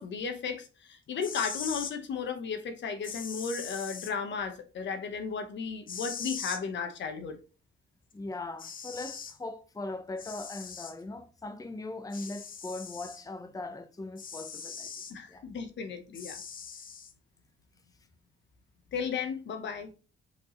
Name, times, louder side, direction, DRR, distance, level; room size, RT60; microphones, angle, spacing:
voice 1, 0.0-7.4 15.1-16.4 18.9-19.9, left 5 dB, 65° left, 1.3 m, -35 dB
sound 1, 1.1-1.9 3.0-4.1 5.9-6.6 8.1-8.2 8.6-9.4 10.2-10.9 12.1-13.2 14.2-15.1 16.1-17.1, left 6 dB, 45° left, 0.9 m, -41 dB
voice 2, 8.1-14.9 15.3-15.5, left 2 dB, 15° left, 1.0 m, -40 dB
7.7 x 4.7 x 3.2 m
cardioid pair, 90°, 20 cm